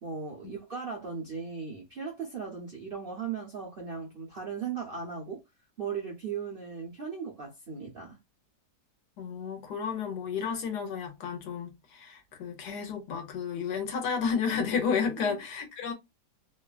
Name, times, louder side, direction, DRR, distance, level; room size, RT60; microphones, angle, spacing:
voice 1, 0.0-5.4 5.8-8.2 15.2-15.4, right 6 dB, 55° right, 0.6 m, -37 dB
voice 2, 9.2-15.9, left 6 dB, 75° left, 1.4 m, -32 dB
3.1 x 2.2 x 2.3 m
omnidirectional pair, 1.8 m